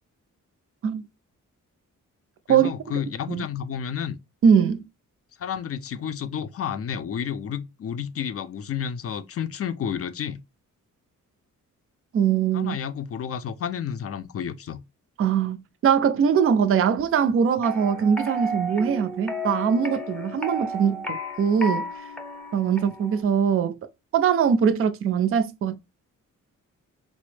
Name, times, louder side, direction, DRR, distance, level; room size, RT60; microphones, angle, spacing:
voice 1, 2.5-4.2 5.4-10.4 12.5-14.8, left 8 dB, 50° left, 0.4 m, -31 dB
voice 2, 4.4-4.9 12.1-12.7 15.2-21.8 22.5-23.8 24.1-25.8, right 7 dB, 45° right, 0.4 m, -22 dB
sound 1, 17.6-23.2, equal, 5° left, 0.7 m, -33 dB
4.0 x 2.0 x 3.2 m
wide cardioid pair, 125°, 31 cm